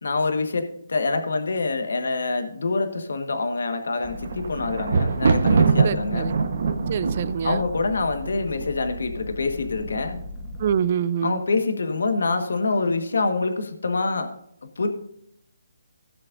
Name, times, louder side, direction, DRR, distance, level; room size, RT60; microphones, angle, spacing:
voice 1, 0.0-6.3 7.4-10.2 11.2-14.3 14.8-14.9, left 3 dB, 70° left, 6 dB, 1.5 m, -25 dB
Thunder, 3.9-9.0 9.7-10.3 10.5-10.6, right 5 dB, 55° right, 1.2 m, -23 dB
sound 1, 4.0-10.8, left 1 dB, 15° left, 1.1 m, -37 dB
voice 2, 5.8-6.3 6.9-7.6 10.6-11.4, right 8 dB, 40° right, 16 dB, 0.5 m, -25 dB
16.5 x 7.6 x 2.6 m, 0.74 s
hypercardioid pair, 160°, 0 cm